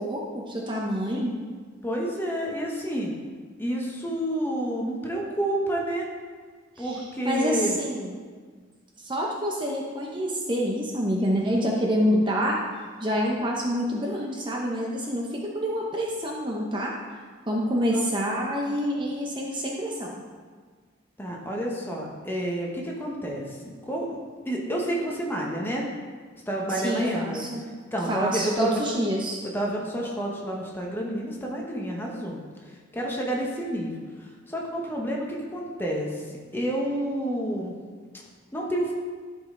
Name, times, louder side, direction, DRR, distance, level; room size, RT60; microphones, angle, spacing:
voice 1, 0.0-1.3 6.8-8.2 9.0-12.6 13.0-16.9 17.5-20.1 26.7-27.6 28.1-29.4, equal, 25° right, -2 dB, 0.8 m, -27 dB
voice 2, 1.8-3.1 3.6-6.1 6.8-7.8 17.9-18.0 21.2-23.4 23.8-24.0 24.4-25.8 26.5-27.4 27.9-29.0 29.5-32.4 32.9-33.9 34.2-36.2 36.5-37.7 38.5-38.9, right 1 dB, 10° left, -2 dB, 1.1 m, -29 dB
11.5 x 5.4 x 3.8 m, 1.5 s
head